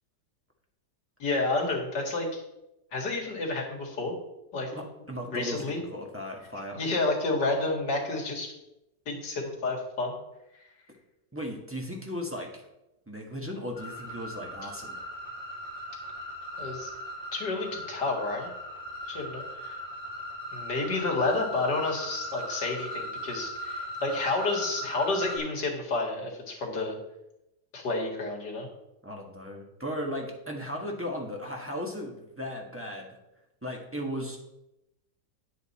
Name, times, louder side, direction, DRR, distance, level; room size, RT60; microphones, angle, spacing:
voice 1, 1.2-2.4 2.9-4.1 4.5-4.7 5.2-5.8 6.7-8.5 9.1-10.2 16.6-16.9 17.3-18.5 19.1-19.8 20.5-27.0 27.7-28.7, left 3 dB, 70° left, 0 dB, 2.5 m, -30 dB
voice 2, 4.7-6.8 11.3-12.6 13.1-15.1 29.0-33.2 33.6-34.4, equal, 10° right, 0 dB, 1.4 m, -36 dB
sound 1, 13.7-25.4, equal, 20° left, 4.5 m, -38 dB
9.6 x 8.1 x 4.2 m, 0.89 s
omnidirectional pair, 1.9 m